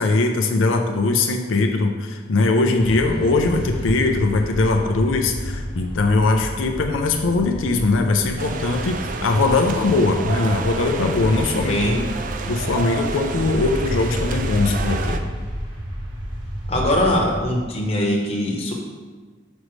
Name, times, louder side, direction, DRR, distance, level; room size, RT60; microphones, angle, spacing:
voice 1, 0.0-12.1 12.4-15.2, left 3 dB, 85° left, 3 dB, 0.5 m, -20 dB
sound 1, 2.8-17.4, equal, 25° right, 1.0 m, -30 dB
sound 2, 8.4-15.2, right 5 dB, 40° right, 0.3 m, -31 dB
voice 2, 16.7-18.7, left 1 dB, 30° left, -1 dB, 0.9 m, -21 dB
6.2 x 5.3 x 3.1 m, 1.4 s
head